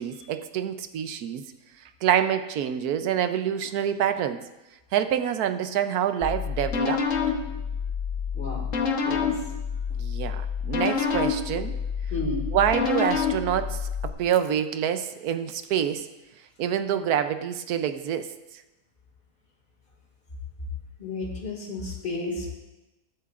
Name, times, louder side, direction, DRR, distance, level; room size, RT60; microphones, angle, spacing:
voice 1, 0.0-1.4 2.0-4.5 4.9-7.1 10.0-11.8 12.5-16.1 16.6-18.3, right 9 dB, 85° right, 10 dB, 1.2 m, -26 dB
sound 1, 6.2-14.1, left 6 dB, 60° left, 1.4 m, -28 dB
voice 2, 12.1-12.4 21.0-22.5, left 2 dB, 35° left, -1 dB, 2.3 m, -32 dB
21.0 x 7.7 x 2.5 m, 1.0 s
omnidirectional pair, 1.6 m